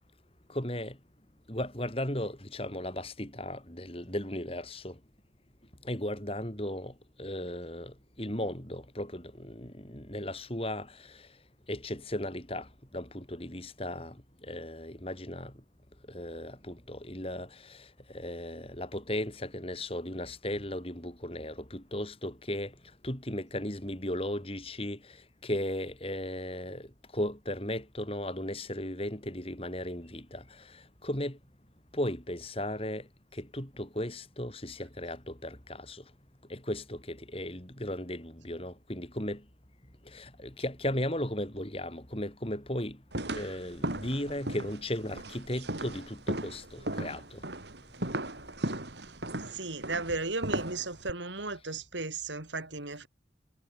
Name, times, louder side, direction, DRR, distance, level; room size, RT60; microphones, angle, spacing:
voice 1, 0.5-1.0 1.5-5.0 5.8-11.4 11.7-15.6 16.1-22.7 23.0-31.4 31.9-36.1 36.5-39.5 40.0-47.4, left 1 dB, 30° left, 4.3 m, -36 dB
sound 1, 43.1-51.1, right 1 dB, 65° right, 3.9 m, -36 dB
voice 2, 49.5-53.1, right 3 dB, 80° right, 4.6 m, -35 dB
head